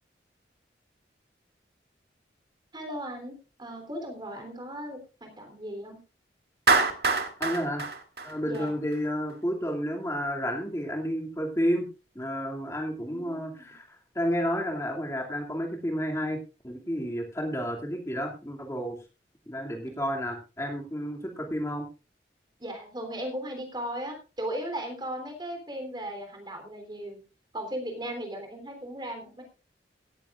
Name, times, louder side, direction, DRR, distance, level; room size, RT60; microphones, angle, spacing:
voice 1, 2.7-6.0 8.4-8.7 13.1-13.7 19.9-20.0 22.6-27.2 27.5-29.4, equal, 25° right, 5 dB, 3.4 m, -37 dB
Clapping, 6.7-9.0, right 4 dB, 60° right, 2.0 m, -25 dB
voice 2, 7.4-7.9 8.2-11.9 12.1-16.4 16.6-19.0 19.5-21.9, equal, 15° left, 0 dB, 2.5 m, -31 dB
17.0 x 13.5 x 2.5 m, 0.30 s
head